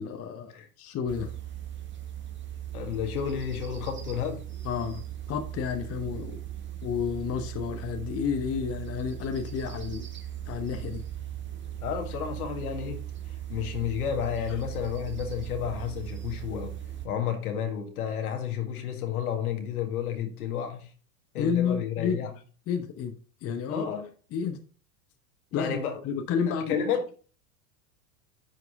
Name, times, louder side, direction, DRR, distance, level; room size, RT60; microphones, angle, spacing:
voice 1, 0.0-1.3 4.6-6.4 6.8-10.1 10.5-11.0 21.4-22.2 22.7-23.1 23.4-23.9 24.3-24.6 25.5-26.8, left 7 dB, 30° left, 1.0 m, -31 dB
sound 1, 1.1-17.1, right 11 dB, 25° right, 1.3 m, -38 dB
voice 2, 2.7-4.4 11.8-13.0 13.5-16.8 17.0-20.9 21.3-22.3 23.7-24.1 25.5-26.0 26.5-27.1, left 8 dB, 70° left, 1.8 m, -31 dB
10.0 x 4.7 x 3.6 m
figure-of-eight pair, 85°, 46 cm